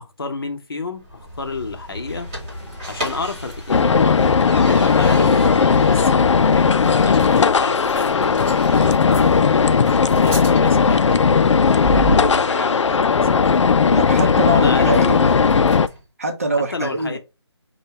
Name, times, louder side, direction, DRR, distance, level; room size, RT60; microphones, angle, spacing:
voice 1, 0.0-2.3 2.9-5.3 5.8-8.4 8.8-11.4 11.8-13.4 14.2-15.0 16.5-17.2, left 3 dB, 55° left, 0.8 m, -30 dB
sound 1, 0.9-16.0, right 1 dB, 15° right, 1.4 m, -34 dB
sound 2, 1.8-12.5, left 1 dB, 15° left, 3.0 m, -39 dB
sound 3, 3.7-15.9, left 5 dB, 85° left, 0.4 m, -16 dB
voice 2, 13.9-15.3 16.2-17.2, right 1 dB, 30° right, 0.7 m, -24 dB
5.2 x 2.3 x 4.2 m
hypercardioid pair, 175°, 15 cm